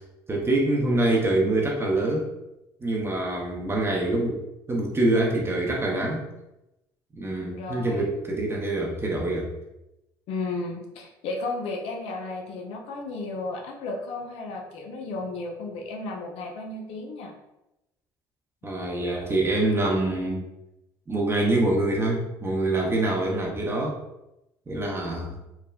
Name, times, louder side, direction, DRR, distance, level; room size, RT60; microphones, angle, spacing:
voice 1, 0.3-2.3 2.8-4.4 4.7-6.2 7.2-9.5 18.6-20.4 21.1-24.0 24.7-25.4, right 2 dB, 25° right, -2 dB, 0.6 m, -25 dB
voice 2, 7.5-8.1 10.3-17.3, left 3 dB, 65° left, 1 dB, 0.5 m, -34 dB
3.2 x 2.0 x 2.3 m, 0.91 s
hypercardioid pair, 65°, 11 cm